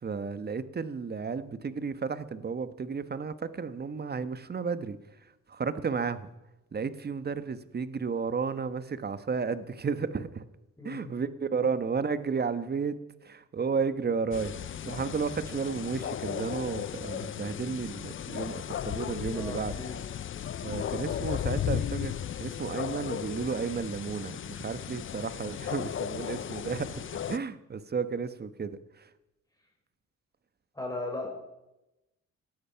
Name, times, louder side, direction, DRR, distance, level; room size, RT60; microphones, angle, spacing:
voice 1, 0.0-6.3 6.7-10.4 10.8-13.0 13.2-19.7 20.6-22.1 22.4-27.0 27.3-29.1, right 5 dB, 35° right, 13 dB, 1.3 m, -33 dB
sound 1, 14.3-27.4, left 9 dB, 40° left, 0.6 m, -35 dB
voice 2, 19.3-20.0 30.7-31.3, left 2 dB, 10° left, -1 dB, 6.5 m, -36 dB
18.0 x 13.0 x 5.8 m, 0.94 s
cardioid pair, 90°, 30 cm